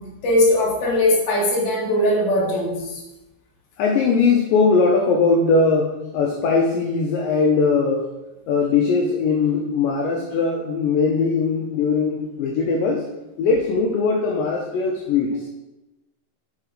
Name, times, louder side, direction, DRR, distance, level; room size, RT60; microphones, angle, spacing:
voice 1, 0.0-3.0, left 1 dB, 55° left, -4 dB, 1.2 m, -20 dB
voice 2, 3.8-8.1 8.5-13.1 13.4-15.5, left 4 dB, 85° left, 1 dB, 1.9 m, -20 dB
6.4 x 3.7 x 5.0 m, 1.0 s
omnidirectional pair, 4.7 m